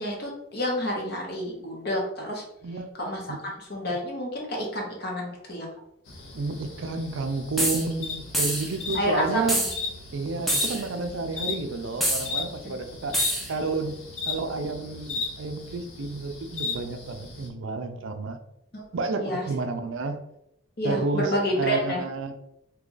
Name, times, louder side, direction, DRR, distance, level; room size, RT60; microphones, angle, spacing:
voice 1, 0.0-2.4 3.0-3.2 3.7-5.7 8.9-9.7 12.6-12.8 18.7-18.8 19.1-19.4 20.8-22.0, equal, 50° left, -1 dB, 0.9 m, -29 dB
sound 1, 6.1-17.5, left 4 dB, 85° left, 0.8 m, -36 dB
voice 2, 6.3-9.6 10.1-13.2 13.5-14.0 14.3-18.4 18.9-20.2 20.8-22.3, right 3 dB, 70° right, 8 dB, 0.4 m, -30 dB
sound 2, 7.6-7.9 8.3-8.7 9.5-9.8 10.5-10.8 12.0-12.3 13.1-13.5, right 1 dB, ahead, 0.4 m, -25 dB
2.9 x 2.4 x 3.8 m, 0.79 s
head